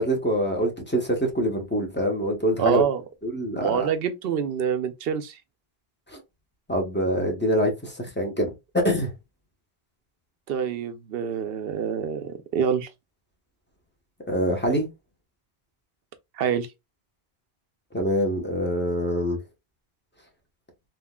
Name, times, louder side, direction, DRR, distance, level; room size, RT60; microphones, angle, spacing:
voice 1, 0.0-2.8 3.2-3.9 6.7-8.5 8.7-9.1 14.3-14.9 17.9-19.4, equal, 10° left, 0.9 m, -24 dB
voice 2, 2.6-3.0 3.6-5.4 10.5-12.9 16.3-16.7, right 7 dB, 70° right, 0.8 m, -26 dB
3.6 x 2.4 x 2.2 m
omnidirectional pair, 1.0 m